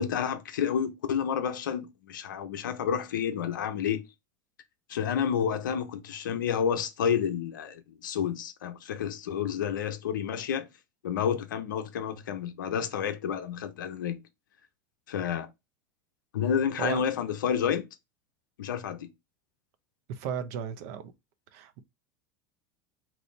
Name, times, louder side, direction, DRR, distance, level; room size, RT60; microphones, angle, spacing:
voice 1, 0.0-4.1 4.9-10.7 11.0-14.2 15.1-15.5 16.3-17.8 18.6-19.1, left 8 dB, 85° left, 0.6 m, -30 dB
voice 2, 20.1-21.1 21.5-21.8, right 8 dB, 65° right, 0.6 m, -35 dB
3.0 x 2.5 x 3.1 m
hypercardioid pair, 90°, 10 cm